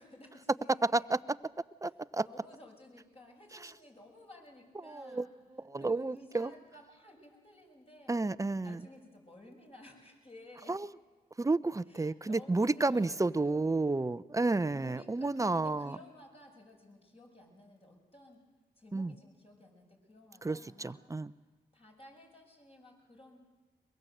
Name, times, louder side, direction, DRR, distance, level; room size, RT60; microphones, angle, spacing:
voice 1, 0.0-1.1 1.9-5.3 5.8-8.2 8.6-10.8 11.9-13.7 14.7-18.4 18.7-21.0 21.7-23.4, left 1 dB, 35° left, 1 dB, 6.7 m, -55 dB
voice 2, 0.8-1.4 1.8-2.3 3.6-3.7 4.8-5.3 5.6-6.5 8.1-8.8 10.7-10.9 11.4-16.0 18.9-19.1 20.4-21.3, right 3 dB, 20° right, 17 dB, 0.7 m, -31 dB
22.5 x 22.0 x 8.0 m, 1.3 s
supercardioid pair, 50°, 17 cm